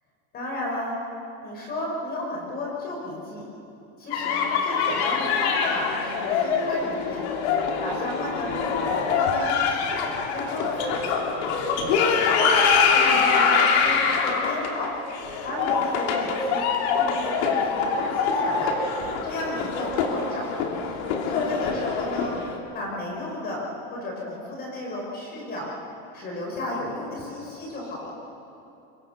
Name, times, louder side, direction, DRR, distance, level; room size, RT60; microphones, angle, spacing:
voice 1, 0.3-1.0 1.4-3.4 4.0-7.2 7.8-9.9 10.3-11.2 11.9-12.6 12.9-14.9 15.4-16.6 17.0-18.8 19.2-20.5 21.3-22.3 22.7-23.6 23.9-25.7 26.1-28.1, left 1 dB, 25° left, -2 dB, 4.8 m, -33 dB
sound 1, 4.1-22.6, left 5 dB, 55° left, 3.1 m, -24 dB
24.5 x 23.0 x 6.6 m, 2.8 s
supercardioid pair, 170°, 38 cm